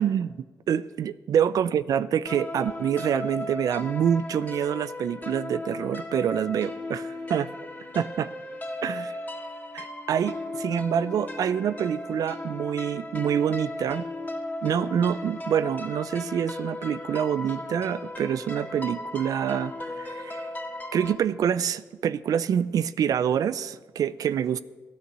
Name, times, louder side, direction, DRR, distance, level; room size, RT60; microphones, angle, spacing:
voice 1, 0.0-7.5 7.9-8.3 8.8-9.1 9.7-14.0 14.6-20.5 20.9-24.6, right 8 dB, 75° right, 16 dB, 0.4 m, -26 dB
sound 1, 2.3-21.2, left 2 dB, 25° left, 2.7 m, -36 dB
12.5 x 9.3 x 6.8 m, 1.2 s
cardioid pair, 65°, 6 cm